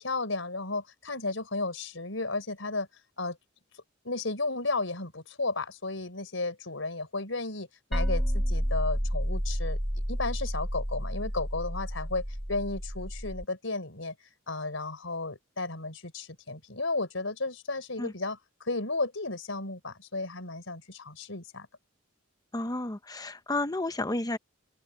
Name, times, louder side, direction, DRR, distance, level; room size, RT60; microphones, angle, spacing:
voice 1, 0.0-2.9 3.2-3.4 4.0-9.8 10.1-12.2 12.5-14.1 14.5-21.7, left 3 dB, 75° left, 4.9 m, -33 dB
sound 1, 7.9-13.4, equal, ahead, 0.3 m, -30 dB
voice 2, 22.5-24.4, left 2 dB, 20° left, 0.9 m, -31 dB
open air
head